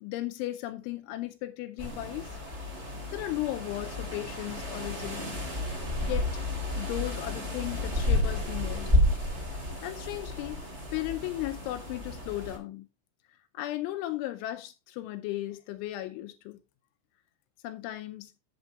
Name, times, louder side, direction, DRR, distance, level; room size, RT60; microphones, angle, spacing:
voice 1, 0.0-2.3 3.1-5.5 6.0-6.3 6.8-8.9 9.8-10.6 10.9-12.9 13.5-16.6 17.6-18.3, left 15 dB, 80° left, 2.9 m, -36 dB
sound 1, 1.8-12.6, left 1 dB, 20° right, 1.8 m, -31 dB
11.0 x 7.8 x 2.4 m
omnidirectional pair, 5.9 m